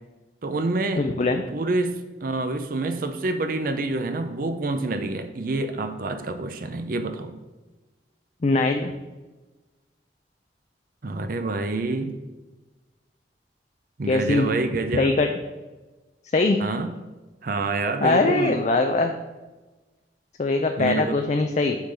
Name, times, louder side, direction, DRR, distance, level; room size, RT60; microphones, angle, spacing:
voice 1, 0.4-1.1 1.5-7.4 11.0-12.1 14.0-15.2 16.6-16.9 17.4-18.6 20.8-21.2, right 2 dB, 50° right, 8 dB, 0.6 m, -27 dB
voice 2, 1.0-1.4 8.4-8.9 14.1-14.5 14.9-15.3 16.3-16.6 18.0-19.1 20.4-21.8, left 3 dB, 40° left, 5 dB, 0.4 m, -21 dB
7.2 x 3.8 x 6.5 m, 1.2 s
head